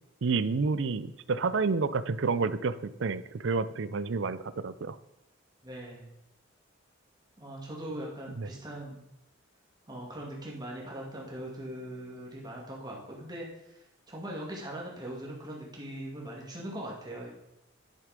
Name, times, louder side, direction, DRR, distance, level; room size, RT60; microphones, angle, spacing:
voice 1, 0.2-5.0 8.4-8.5, right 4 dB, 65° right, 15 dB, 0.5 m, -29 dB
voice 2, 5.6-6.1 7.4-9.0 9.9-13.8 14.1-17.3, right 1 dB, 20° right, -2 dB, 2.4 m, -40 dB
10.5 x 6.9 x 5.1 m, 0.82 s
head